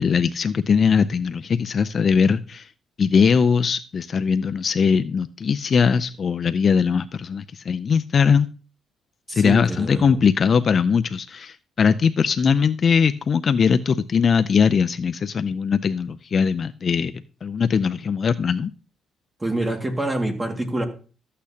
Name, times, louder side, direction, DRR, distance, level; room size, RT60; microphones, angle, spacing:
voice 1, 0.0-2.7 3.0-8.5 9.3-17.1 17.4-18.7, left 6 dB, 40° left, 12 dB, 0.4 m, -20 dB
voice 2, 9.3-10.2 19.4-20.8, right 1 dB, 15° right, 4 dB, 2.0 m, -26 dB
13.0 x 8.4 x 2.8 m, 0.36 s
cardioid pair, 115°, 0 cm